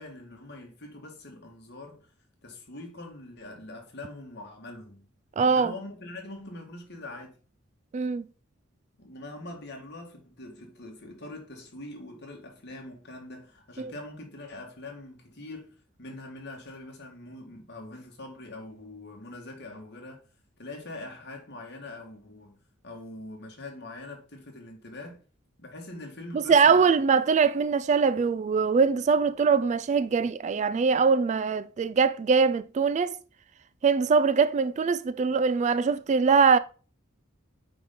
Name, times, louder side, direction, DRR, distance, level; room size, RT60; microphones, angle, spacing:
voice 1, 0.0-2.1 2.4-5.1 5.4-7.3 9.0-20.2 20.6-22.6 22.8-25.2 25.6-26.8, left 2 dB, 55° left, 1.9 m, -43 dB
voice 2, 5.4-5.7 7.9-8.2 13.8-13.9 26.3-33.2 33.8-36.6, right 5 dB, 35° right, 0.3 m, -22 dB
8.6 x 4.0 x 3.8 m
head